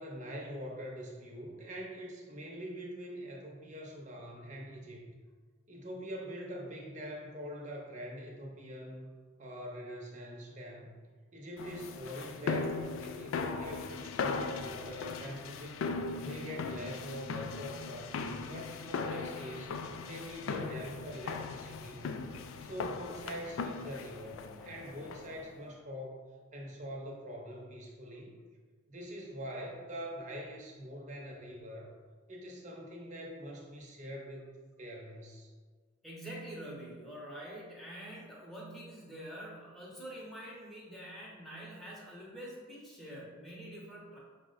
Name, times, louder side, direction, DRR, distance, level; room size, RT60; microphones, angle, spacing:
voice 1, 0.0-5.0 5.7-9.1 9.4-10.9 11.3-15.8 16.2-19.8 20.0-28.3 28.9-31.9 32.3-35.5, equal, 35° right, -1 dB, 0.7 m, -44 dB
sound 1, 11.6-25.5, left 4 dB, 85° left, 0.3 m, -38 dB
voice 2, 36.0-44.2, right 1 dB, ahead, -6 dB, 0.7 m, -46 dB
5.7 x 2.1 x 3.8 m, 1.5 s
head